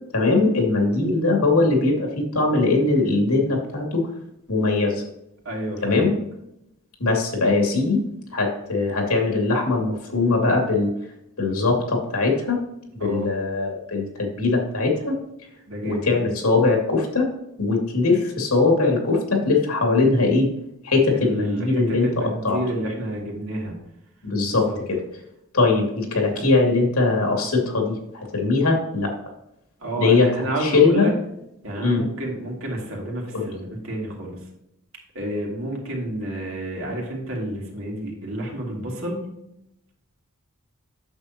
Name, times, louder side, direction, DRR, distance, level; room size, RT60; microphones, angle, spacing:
voice 1, 0.1-4.1 4.5-5.0 5.8-6.1 7.0-8.0 8.3-10.9 11.4-12.6 13.0-15.2 15.8-17.3 17.6-20.5 20.8-22.6 24.2-25.0 25.5-29.1 30.0-30.3 30.6-31.1 31.8-32.0 33.3-33.5, left 3 dB, 85° left, 1 dB, 2.4 m, -21 dB
voice 2, 5.4-6.1 13.0-13.3 15.7-16.1 21.1-23.8 24.6-24.8 26.3-26.5 29.8-31.1 31.6-34.4 35.1-39.3, right 1 dB, 65° right, -2 dB, 2.7 m, -30 dB
8.8 x 7.0 x 2.9 m, 0.82 s
head